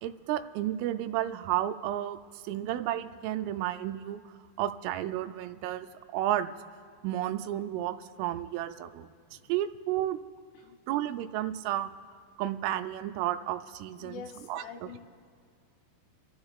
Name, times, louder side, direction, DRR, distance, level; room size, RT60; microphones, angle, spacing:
voice 1, 0.0-2.2 2.4-4.2 4.6-5.9 6.1-6.5 7.0-10.2 10.9-11.9 12.4-14.2 14.5-14.6, right 13 dB, 85° right, 9 dB, 3.1 m, -32 dB
voice 2, 14.0-15.0, left 7 dB, 80° left, 4 dB, 3.1 m, -45 dB
30.0 x 12.5 x 2.4 m, 2.1 s
omnidirectional pair, 5.8 m